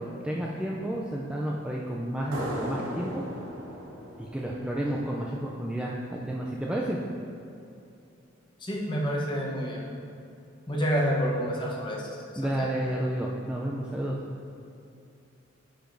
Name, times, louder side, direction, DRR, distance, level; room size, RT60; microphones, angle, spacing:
voice 1, 0.0-3.2 4.2-7.0 12.4-14.2, right 1 dB, 5° right, -4 dB, 0.3 m, -31 dB
sound 1, 2.3-5.6, equal, 70° right, 0.9 m, -37 dB
voice 2, 8.6-9.9 10.7-12.1 12.4-12.7, equal, 25° left, -3 dB, 0.9 m, -28 dB
10.0 x 4.9 x 2.6 m, 2.7 s
head